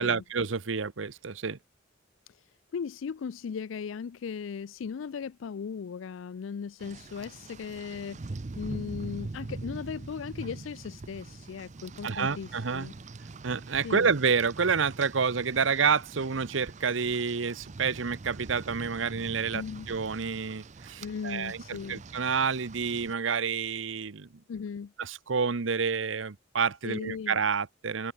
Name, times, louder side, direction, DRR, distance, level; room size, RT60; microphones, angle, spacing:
voice 1, 0.0-1.6 12.0-12.9 13.4-24.3 25.0-28.1, right 5 dB, 80° right, 0.8 m, -29 dB
voice 2, 2.7-12.9 13.8-14.1 19.5-19.9 21.0-22.0 24.5-24.9 26.8-27.4, left 6 dB, 85° left, 0.4 m, -37 dB
Rain, 6.8-23.1, right 3 dB, 40° right, 0.6 m, -43 dB
head